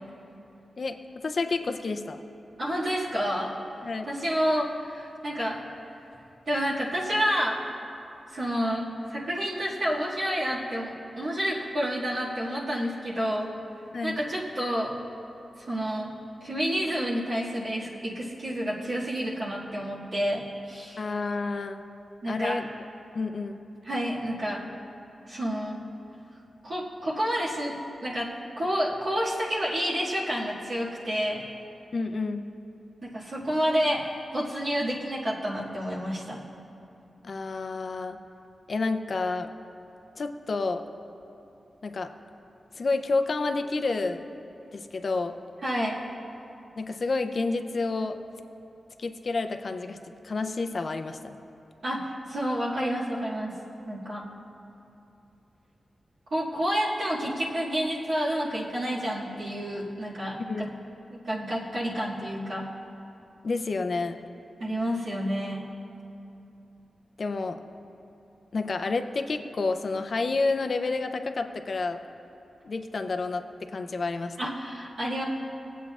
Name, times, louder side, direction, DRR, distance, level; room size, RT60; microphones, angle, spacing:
voice 1, 1.2-2.2 3.8-4.1 13.9-14.2 21.0-21.8 22.3-22.6 23.1-23.6 31.9-32.4 37.2-38.2 38.7-39.5 40.2-40.8 41.8-42.1 42.8-44.3 44.7-45.3 46.8-48.2 49.0-50.0 50.2-51.4 60.5-60.6 63.4-64.2 67.2-67.6 68.5-72.0 72.6-73.4 73.7-74.4, left 3 dB, 50° left, 6 dB, 0.5 m, -29 dB
voice 2, 2.6-3.5 4.0-5.6 6.5-7.6 8.3-13.5 14.0-14.9 15.7-16.1 16.4-21.0 22.2-22.6 23.8-24.7 25.3-25.8 26.6-27.8 28.0-28.3 28.6-31.4 33.0-34.0 34.3-36.4 45.6-46.0 51.8-53.5 53.9-54.3 56.3-60.7 61.1-62.7 64.6-65.7 74.4-75.2, equal, 65° right, -9 dB, 1.9 m, -29 dB
21.5 x 8.2 x 2.4 m, 2.9 s
wide cardioid pair, 115°, 0 cm